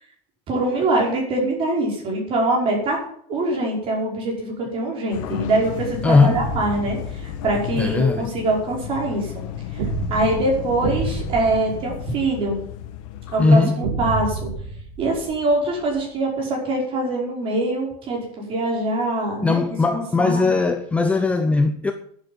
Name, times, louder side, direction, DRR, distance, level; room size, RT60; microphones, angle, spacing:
voice 1, 0.5-3.0 3.3-9.4 9.7-12.6 13.3-14.5 15.0-19.6 19.9-20.4, right 2 dB, 30° right, 5.4 m, -23 dB
sound 1, 5.1-13.6, left 10 dB, 65° left, 1.4 m, -33 dB
voice 2, 6.0-6.4 7.8-8.3 13.4-13.8 19.4-21.9, left 3 dB, 5° left, 0.5 m, -18 dB
sound 2, 6.3-7.7 9.8-12.7 13.8-16.0, right 3 dB, 85° right, 3.5 m, -30 dB
11.0 x 8.2 x 8.9 m
cardioid pair, 180°, 18 cm